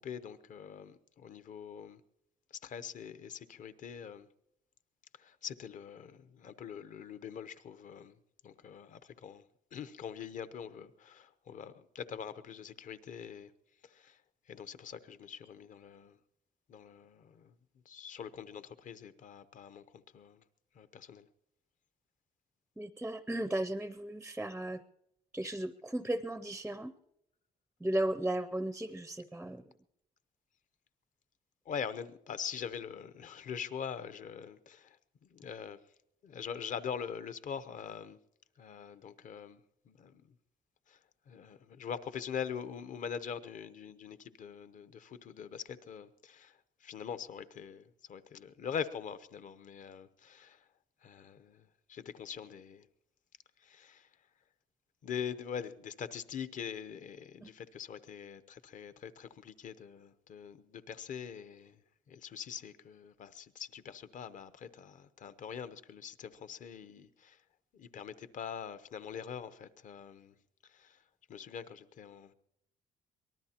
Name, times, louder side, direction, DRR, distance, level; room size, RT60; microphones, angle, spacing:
voice 1, 0.0-2.0 2.5-4.3 5.1-8.2 8.4-9.4 9.7-13.5 13.8-16.2 16.7-17.5 17.8-20.4 20.7-21.3 31.6-35.8 36.2-38.2 38.6-40.3 40.9-41.0 41.3-50.7 51.0-52.9 53.6-54.1 55.0-61.8 62.1-67.4 67.7-70.4 70.6-71.0 71.3-72.3, left 7 dB, 50° left, 0.8 m, -43 dB
voice 2, 22.8-24.8 25.3-26.9 27.8-29.6 57.4-57.5, right 1 dB, 5° right, 0.5 m, -35 dB
24.5 x 19.0 x 2.9 m
cardioid pair, 110°, 17 cm